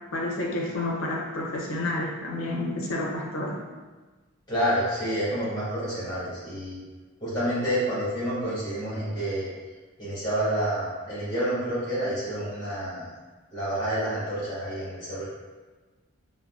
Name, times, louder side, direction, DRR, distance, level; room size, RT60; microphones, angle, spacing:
voice 1, 0.1-3.6, left 2 dB, 75° left, -2 dB, 0.6 m, -30 dB
voice 2, 4.5-6.8 7.2-9.5 10.0-13.1 13.5-15.3, equal, 20° left, -9 dB, 1.3 m, -28 dB
3.5 x 2.1 x 2.3 m, 1.3 s
head